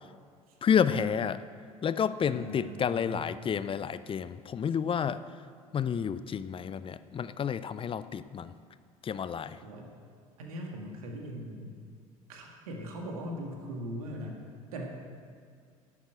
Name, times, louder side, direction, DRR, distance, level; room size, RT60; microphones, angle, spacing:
voice 1, 0.6-1.4 1.8-5.2 5.7-8.5 9.0-9.6, left 7 dB, 30° left, 14 dB, 0.6 m, -30 dB
voice 2, 2.3-3.3 9.4-9.9 10.4-11.8 12.3-14.4 14.7-14.9, equal, 70° right, 1 dB, 1.8 m, -40 dB
11.5 x 8.5 x 8.0 m, 2.2 s
figure-of-eight pair, 65°, 19 cm